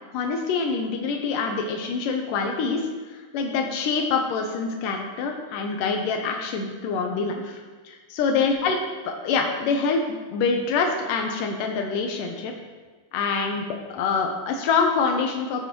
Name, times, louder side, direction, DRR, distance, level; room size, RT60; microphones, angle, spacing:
voice 1, 0.1-2.8 3.1-8.8 9.1-10.0 10.3-12.5 13.1-13.6 13.9-15.7, left 5 dB, 90° left, 3 dB, 2.5 m, -25 dB
15.5 x 8.1 x 3.1 m, 1.4 s
omnidirectional pair, 3.7 m